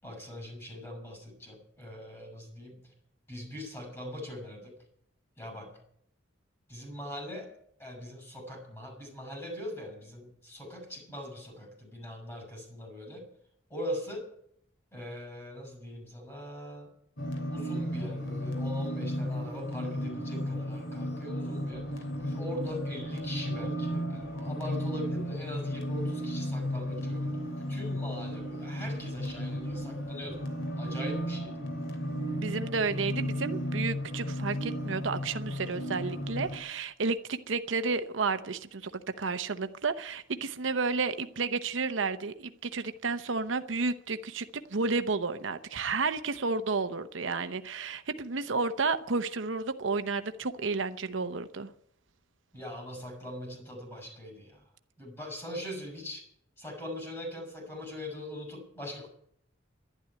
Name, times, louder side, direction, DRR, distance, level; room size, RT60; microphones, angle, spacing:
voice 1, 0.0-2.9 3.3-4.7 5.4-5.7 6.7-7.5 7.8-13.3 13.7-14.3 14.9-16.9 17.5-30.4 30.8-31.5 52.5-54.6 55.0-56.3 56.6-59.1, left 1 dB, 15° left, 6.9 m, -41 dB
sound 1, 17.2-36.6, equal, 80° left, 3.0 m, -34 dB
voice 2, 32.1-51.7, right 4 dB, 75° right, 0.8 m, -32 dB
12.0 x 11.5 x 9.6 m
head